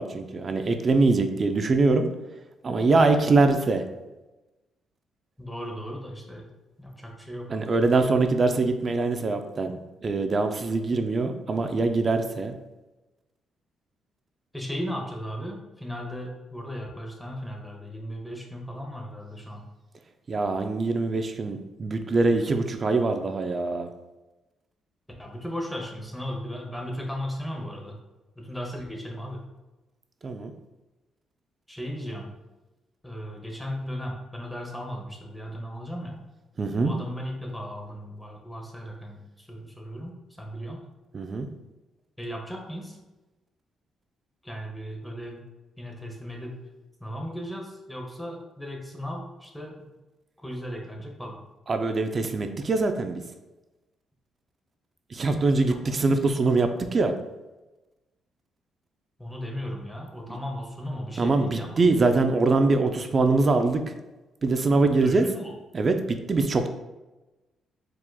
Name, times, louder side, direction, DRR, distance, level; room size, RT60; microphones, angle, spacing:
voice 1, 0.0-2.1 2.6-3.8 7.5-12.5 20.3-23.9 30.2-30.5 36.6-36.9 41.1-41.5 51.7-53.2 55.1-57.1 61.2-63.9 64.4-65.2 65.7-66.7, right 3 dB, 40° right, 7 dB, 0.4 m, -23 dB
voice 2, 5.4-6.5 6.8-7.9 14.5-19.6 25.2-28.0 28.4-29.4 31.7-32.3 33.0-36.2 36.8-40.8 42.2-43.0 44.4-45.4 45.8-46.6 47.0-49.9 50.4-51.4 55.6-56.5 59.2-61.8 65.0-65.5, equal, 5° left, 0 dB, 0.9 m, -36 dB
4.7 x 3.7 x 2.3 m, 1.1 s
cardioid pair, 90°, 0 cm